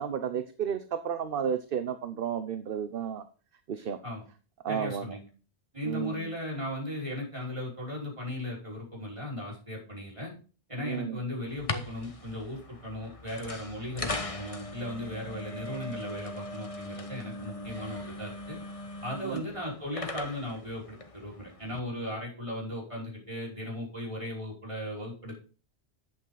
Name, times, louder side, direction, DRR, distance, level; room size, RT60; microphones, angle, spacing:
voice 1, 0.0-3.2 3.7-4.0 4.6-5.2 5.8-6.3 10.8-11.2 19.2-19.4, right 8 dB, 55° right, 10 dB, 0.9 m, -32 dB
voice 2, 4.7-5.2 5.7-10.3 10.7-14.1 14.4-18.6 19.0-25.4, left 1 dB, 30° right, -4 dB, 5.2 m, -37 dB
sound 1, 11.5-21.8, left 2 dB, 30° left, 1.3 m, -40 dB
11.5 x 8.9 x 4.0 m, 0.38 s
omnidirectional pair, 1.1 m